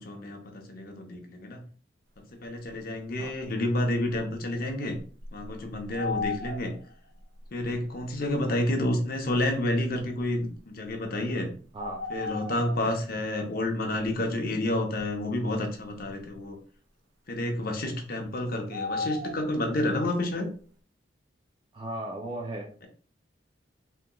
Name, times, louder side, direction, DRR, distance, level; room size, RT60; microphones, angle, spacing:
voice 1, 0.0-1.6 2.4-5.0 5.3-6.7 7.5-11.5 12.1-16.6 17.3-20.5, left 1 dB, 50° left, 2 dB, 0.7 m, -29 dB
sound 1, 4.1-4.2 5.0-6.9 7.6-7.7 9.3-9.4 11.8-12.9 18.7-19.5, left 3 dB, 70° right, 0.6 m, -34 dB
voice 2, 21.7-22.9, right 1 dB, 25° right, -1 dB, 0.4 m, -36 dB
3.6 x 2.8 x 2.2 m, 0.44 s
head